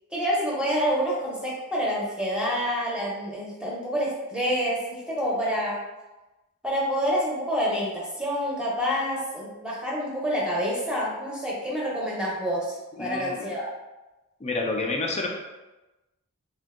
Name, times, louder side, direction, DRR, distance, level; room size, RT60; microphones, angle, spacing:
voice 1, 0.1-5.8 6.6-13.7, equal, 5° right, -5 dB, 0.7 m, -27 dB
voice 2, 13.0-13.5 14.4-15.3, left 2 dB, 30° left, 0 dB, 0.4 m, -29 dB
2.6 x 2.2 x 3.5 m, 1.1 s
head